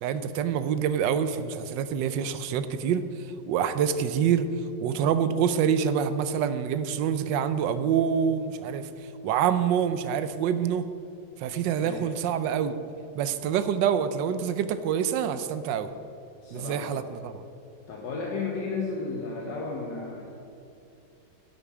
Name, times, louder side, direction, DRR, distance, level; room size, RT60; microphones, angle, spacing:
voice 1, 0.0-3.0 3.5-4.5 4.8-8.9 9.2-10.8 11.4-12.8 13.1-15.9 16.5-17.4, right 8 dB, 80° right, 12 dB, 1.3 m, -26 dB
voice 2, 11.7-12.2 16.4-17.1 17.9-20.3, left 4 dB, 75° left, -2 dB, 1.8 m, -33 dB
11.0 x 8.8 x 4.8 m, 2.7 s
omnidirectional pair, 2.0 m